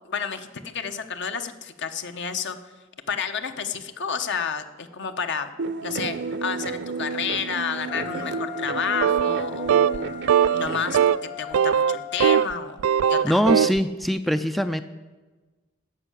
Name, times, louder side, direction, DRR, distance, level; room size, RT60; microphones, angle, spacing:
voice 1, 0.1-2.6 3.1-5.5 5.8-10.1 10.5-12.8 13.1-13.4, left 6 dB, 60° left, 8 dB, 1.0 m, -30 dB
sound 1, 5.6-11.0, right 4 dB, 55° right, 0.7 m, -32 dB
Wind instrument woodwind instrument, 7.8-12.5, left 7 dB, 35° left, 0.8 m, -39 dB
sound 2, 9.0-9.4 9.7-10.0 10.3-10.7 10.9-11.2 11.5-12.5 12.8-13.8, right 8 dB, 75° right, 0.3 m, -19 dB
voice 2, 13.2-14.8, equal, ahead, 10 dB, 0.4 m, -22 dB
15.0 x 5.7 x 9.8 m, 1.2 s
head